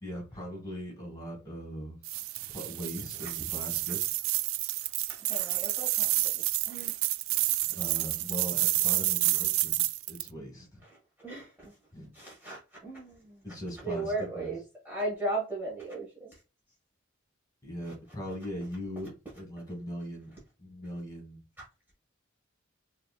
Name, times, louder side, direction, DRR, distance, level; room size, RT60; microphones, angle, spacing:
voice 1, 0.0-2.0 2.5-4.2 7.6-9.8 10.1-10.8 11.9-12.1 13.4-14.5 17.6-20.3 20.6-21.4, equal, 20° left, -1 dB, 2.3 m, -40 dB
sound 1, 2.0-10.3, right 16 dB, 90° right, 0.3 m, -29 dB
voice 2, 5.1-6.1 6.4-7.0 11.2-11.7 12.1-13.4 13.8-14.6 14.8-16.3, right 2 dB, 10° right, -6 dB, 1.5 m, -36 dB
4.9 x 3.0 x 2.4 m, 0.33 s
head